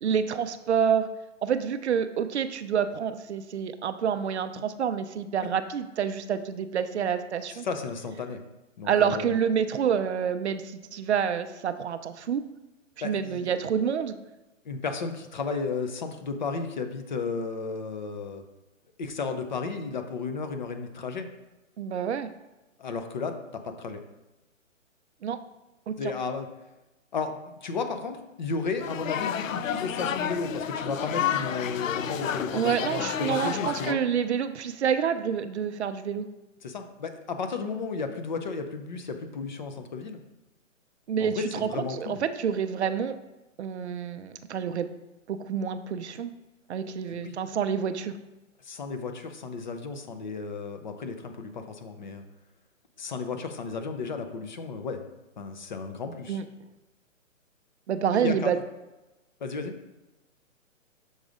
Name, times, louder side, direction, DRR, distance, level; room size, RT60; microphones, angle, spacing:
voice 1, 0.0-1.1 1.4-7.6 8.8-12.4 13.0-14.1 21.8-22.3 25.2-25.4 25.9-26.0 32.5-36.3 41.1-43.1 43.6-44.9 45.3-46.3 46.7-48.1 56.3-56.4 57.9-58.6, right 7 dB, 55° right, 10 dB, 0.5 m, -28 dB
voice 2, 7.5-8.4 8.8-9.3 13.0-13.6 14.6-18.4 19.0-21.3 22.8-24.0 26.0-26.5 27.1-34.0 36.6-40.2 41.2-42.2 47.1-47.4 48.6-52.2 53.0-55.0 55.4-56.4 58.1-58.5 59.4-59.7, left 4 dB, 35° left, 7 dB, 0.6 m, -33 dB
sound 1, 28.8-33.9, left 9 dB, 80° left, 0.6 m, -30 dB
6.4 x 3.9 x 5.0 m, 1.0 s
hypercardioid pair, 155°, 40 cm